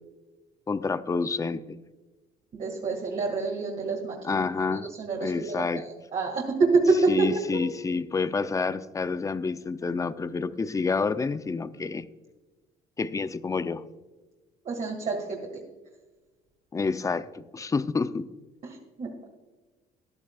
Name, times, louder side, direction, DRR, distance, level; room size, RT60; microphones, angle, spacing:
voice 1, 0.7-1.8 4.2-4.9 5.2-5.8 7.1-12.1 13.0-13.8 16.7-18.3, left 4 dB, 20° left, 14 dB, 0.5 m, -28 dB
voice 2, 2.5-4.4 4.7-5.6 6.1-7.3 14.7-15.4 18.6-19.3, right 4 dB, 45° right, -1 dB, 2.0 m, -27 dB
14.5 x 11.0 x 2.3 m, 1.3 s
cardioid pair, 110°, 17 cm